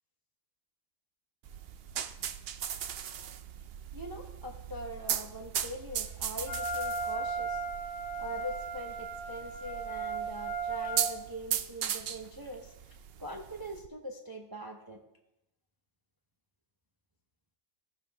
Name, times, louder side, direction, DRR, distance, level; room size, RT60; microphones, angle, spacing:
sound 1, 1.5-13.9, right 9 dB, 60° right, 0.7 m, -38 dB
voice 1, 3.9-15.0, equal, 20° right, 1 dB, 0.7 m, -43 dB
Wind instrument woodwind instrument, 6.4-11.1, right 4 dB, 70° left, 3.5 m, -36 dB
17.0 x 7.1 x 3.5 m, 0.88 s
omnidirectional pair, 1.4 m